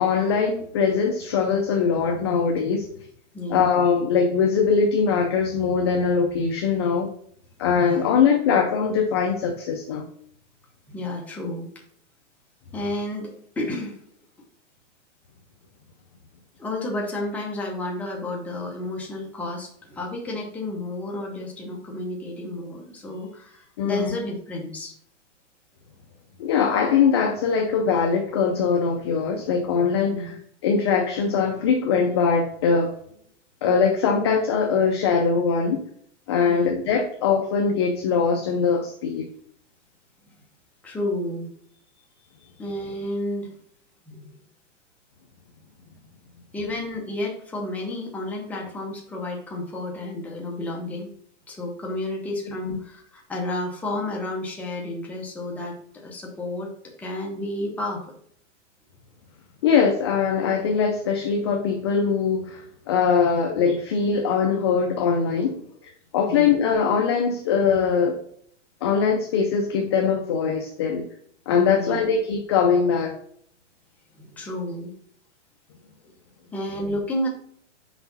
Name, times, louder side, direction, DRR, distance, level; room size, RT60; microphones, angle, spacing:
voice 1, 0.0-2.9 3.5-7.1 7.6-10.1 23.8-24.1 26.4-30.3 30.6-32.9 33.6-35.8 36.3-39.3 52.6-52.7 59.6-65.6 66.1-68.2 68.8-71.0 71.5-73.1, left 6 dB, 20° left, 2 dB, 0.4 m, -22 dB
voice 2, 3.3-3.7 7.8-8.0 10.9-11.7 12.7-14.0 16.6-24.9 30.1-30.4 36.5-36.7 40.8-41.5 42.6-43.5 44.1-44.3 46.5-51.1 51.5-58.0 66.3-66.5 71.7-72.0 74.1-74.9 76.5-77.3, left 1 dB, 5° left, -2 dB, 0.8 m, -31 dB
6.0 x 4.8 x 4.0 m, 0.64 s
hypercardioid pair, 165°, 37 cm